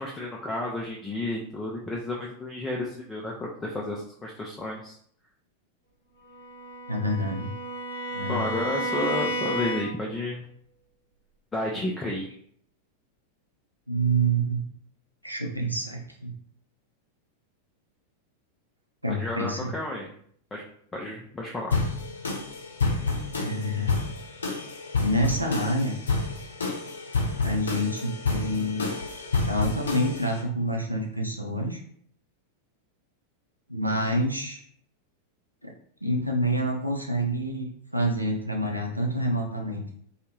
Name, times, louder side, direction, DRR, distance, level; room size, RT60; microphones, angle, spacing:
voice 1, 0.0-5.0 8.3-10.4 11.5-12.3 19.2-20.1 20.5-20.6 20.9-21.7, left 2 dB, 15° left, -2 dB, 0.4 m, -32 dB
Bowed string instrument, 6.3-10.2, right 1 dB, 75° right, 1.0 m, -32 dB
voice 2, 6.9-7.5 8.1-8.6 13.9-14.6 15.2-16.3 19.0-19.7 23.3-24.0 25.0-25.9 27.4-29.0 29.4-31.8 33.7-34.6 35.6-35.7 36.0-39.9, right 1 dB, 90° right, 0 dB, 0.6 m, -27 dB
sound 1, 21.7-30.4, left 3 dB, 70° left, 0.7 m, -29 dB
2.6 x 2.4 x 3.1 m, 0.62 s
figure-of-eight pair, 90°, 0 cm